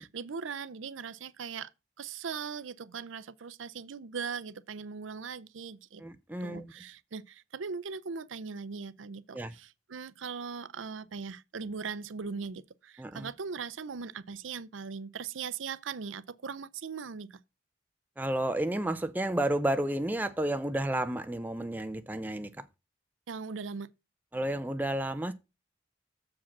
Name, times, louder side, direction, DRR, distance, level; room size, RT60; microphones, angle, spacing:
voice 1, 0.0-1.7 2.0-6.0 6.4-17.4 23.3-23.9, right 5 dB, 90° right, 0.6 m, -39 dB
voice 2, 6.0-6.7 9.3-9.5 13.0-13.3 18.2-22.5 24.3-25.3, right 1 dB, 10° right, 0.4 m, -31 dB
7.3 x 4.9 x 7.1 m
head